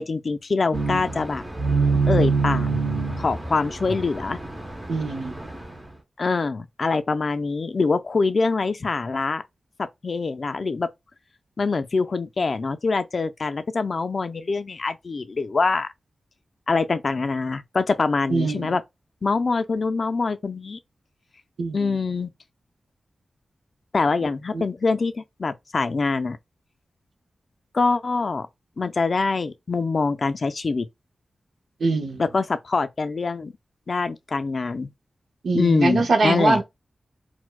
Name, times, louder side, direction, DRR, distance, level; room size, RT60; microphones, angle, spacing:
voice 1, 0.0-1.4 2.1-2.7 3.2-4.4 6.2-9.4 9.8-10.9 11.6-15.9 16.7-18.8 19.2-20.8 21.7-22.3 23.9-26.4 27.7-28.5 28.8-30.9 32.2-33.5 33.9-34.9 35.5-36.6, left 4 dB, 50° left, 0.3 m, -24 dB
sound 1, 0.7-5.6, right 4 dB, 15° right, 0.6 m, -25 dB
voice 2, 4.9-5.3 18.3-18.7 21.6-21.9 24.5-24.6 31.8-32.2 35.4-36.6, right 3 dB, 80° right, 0.6 m, -22 dB
4.3 x 2.1 x 2.2 m
wide cardioid pair, 120°, 0 cm